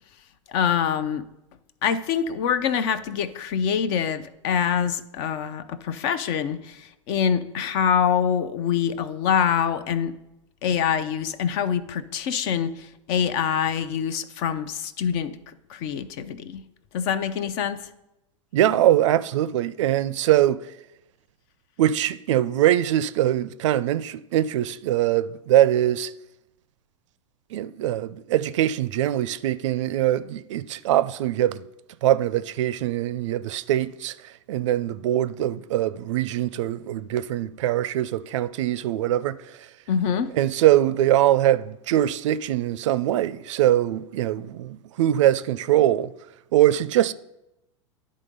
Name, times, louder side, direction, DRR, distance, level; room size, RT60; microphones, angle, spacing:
voice 1, 0.5-1.3 1.8-10.1 10.6-16.6 16.9-17.9 39.9-40.3, left 8 dB, 55° left, 0.6 m, -25 dB
voice 2, 18.5-20.6 21.8-26.1 27.5-31.6 32.0-39.7 40.4-46.1 46.5-47.1, right 13 dB, 70° right, 0.4 m, -22 dB
10.5 x 3.8 x 5.3 m
hypercardioid pair, 95°, 16 cm